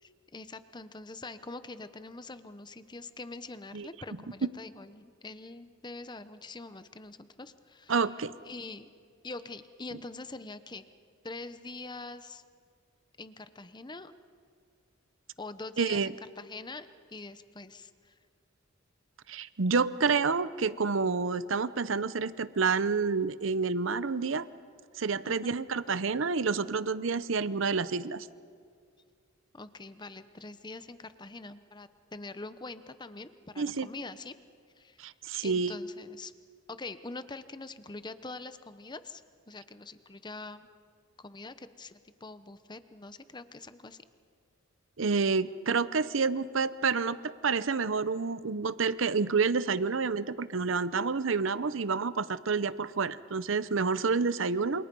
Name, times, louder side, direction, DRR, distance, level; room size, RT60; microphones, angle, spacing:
voice 1, 0.0-8.1 8.4-8.9 9.2-10.8 11.2-12.4 13.2-14.1 15.4-18.2 25.2-25.5 29.5-34.3 34.8-35.1 35.4-36.3 36.7-40.7 41.2-44.0 54.0-54.3, left 3 dB, 20° left, 12 dB, 0.9 m, -44 dB
voice 2, 7.9-8.3 15.8-16.1 19.3-24.5 25.0-28.3 33.6-33.9 35.0-35.7 45.0-54.9, right 4 dB, 65° right, 16 dB, 0.7 m, -29 dB
28.0 x 27.0 x 5.4 m, 2.1 s
head